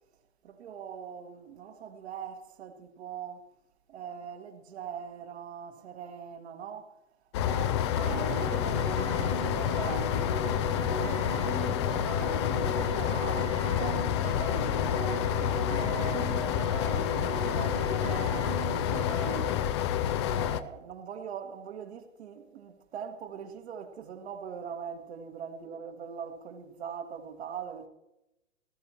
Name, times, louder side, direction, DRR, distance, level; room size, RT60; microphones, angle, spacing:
voice 1, 0.4-3.5 3.9-6.9 7.5-10.2 10.9-15.3 15.7-19.5 20.2-27.9, right 7 dB, 55° right, 1.8 m, -42 dB
sound 1, 7.3-20.6, left 10 dB, 25° left, 0.4 m, -29 dB
sound 2, 7.9-19.5, right 5 dB, 80° right, 2.7 m, -38 dB
19.0 x 13.0 x 2.9 m
figure-of-eight pair, 110°, 38 cm